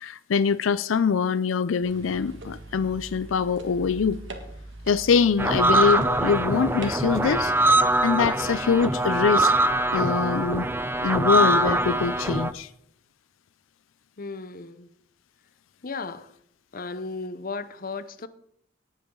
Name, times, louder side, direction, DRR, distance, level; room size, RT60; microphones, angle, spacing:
voice 1, 0.0-4.2 4.9-9.5 9.9-10.7 11.0-12.7, left 6 dB, 90° left, 0.5 m, -24 dB
sound 1, 1.8-7.1, right 2 dB, 70° right, 2.0 m, -42 dB
sound 2, 5.4-12.5, right 2 dB, 10° right, 0.5 m, -23 dB
voice 2, 14.2-14.9 15.8-16.3 16.7-18.3, left 4 dB, 45° left, 0.8 m, -35 dB
18.5 x 9.0 x 3.8 m
head